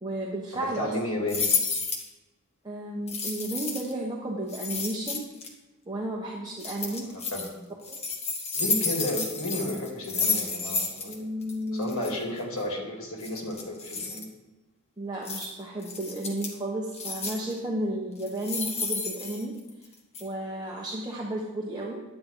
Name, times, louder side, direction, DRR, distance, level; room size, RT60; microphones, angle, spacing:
voice 1, 0.0-0.9 2.6-5.3 5.9-7.1 7.9-8.1 11.0-12.0 15.0-19.6 20.2-22.0, right 1 dB, 20° right, -3 dB, 1.1 m, -33 dB
voice 2, 0.6-1.5 6.9-7.5 8.5-11.2 11.7-14.3, left 1 dB, 70° left, -1 dB, 2.6 m, -33 dB
sound 1, 1.3-2.1 3.1-3.9 4.5-5.5 6.6-7.5 7.8-11.2 11.4-11.5 11.8-12.1 13.2-14.3 15.3-15.5 15.8-16.6 16.9-17.5 18.2-19.9 20.1-20.2, left 4 dB, 30° left, 1.4 m, -31 dB
10.5 x 9.4 x 3.9 m, 1.1 s
head